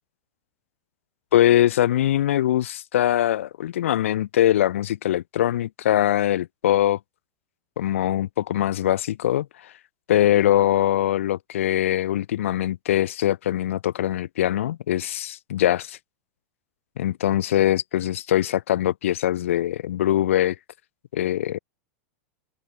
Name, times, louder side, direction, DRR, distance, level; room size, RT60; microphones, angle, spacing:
voice 1, 1.3-7.0 7.8-9.7 10.1-16.0 17.0-20.6 21.1-21.6, left 12 dB, 80° left, 7.1 m, -22 dB
open air
supercardioid pair, 175°, 7 cm